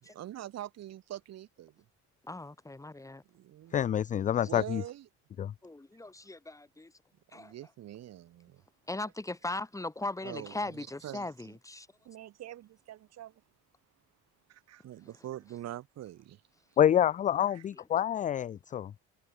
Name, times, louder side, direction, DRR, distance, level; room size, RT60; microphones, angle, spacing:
voice 1, 0.0-1.8 3.3-3.8 4.5-5.1 7.3-8.6 10.2-11.6 12.0-13.3 14.5-16.4 17.5-17.6, right 13 dB, 60° right, 4.2 m, -44 dB
voice 2, 2.2-3.2 5.6-6.9 7.3-7.5 8.9-11.9 17.8-17.9, left 2 dB, 10° left, 6.2 m, -39 dB
voice 3, 3.7-4.8 5.4-5.5 16.8-18.9, left 10 dB, 25° left, 0.4 m, -27 dB
cardioid pair, 130°, 30 cm